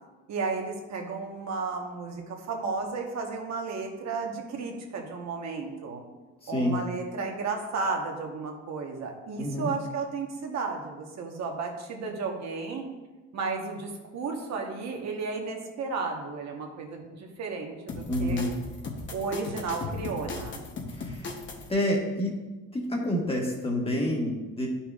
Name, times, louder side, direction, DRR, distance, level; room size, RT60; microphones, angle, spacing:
voice 1, 0.3-6.0 6.5-12.9 13.3-18.4 19.1-20.6, right 4 dB, 55° right, 2 dB, 1.2 m, -33 dB
voice 2, 6.4-6.8 9.4-9.7 18.1-18.5 21.0-21.2 21.7-22.3 22.7-24.7, left 1 dB, 15° left, -1 dB, 1.5 m, -28 dB
sound 1, 17.9-21.7, left 3 dB, 35° left, 1.0 m, -37 dB
11.0 x 5.8 x 2.4 m, 1.2 s
cardioid pair, 125°, 33 cm